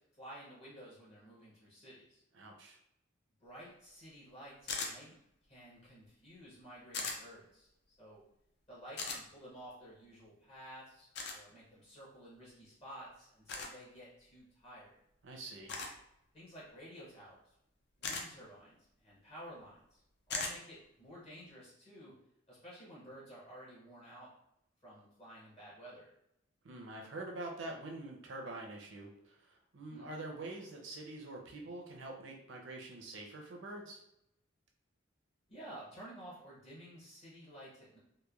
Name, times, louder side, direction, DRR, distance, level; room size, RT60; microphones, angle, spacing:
voice 1, 0.2-2.2 3.4-5.1 5.4-8.2 8.7-14.9 16.3-17.5 18.0-20.0 20.3-22.1 22.5-24.3 24.8-26.1 29.9-30.1 35.5-38.0, right 1 dB, 30° left, -7 dB, 0.7 m, -52 dB
voice 2, 2.3-2.8 15.2-15.8 26.6-34.0, right 2 dB, 60° right, 0 dB, 0.6 m, -45 dB
sound 1, 4.7-4.9 6.9-7.2 9.0-9.2 11.1-11.4 13.5-13.7 15.7-16.0 18.0-18.3 20.3-20.5, left 4 dB, 55° left, 0.4 m, -38 dB
3.0 x 2.2 x 2.3 m, 0.80 s
head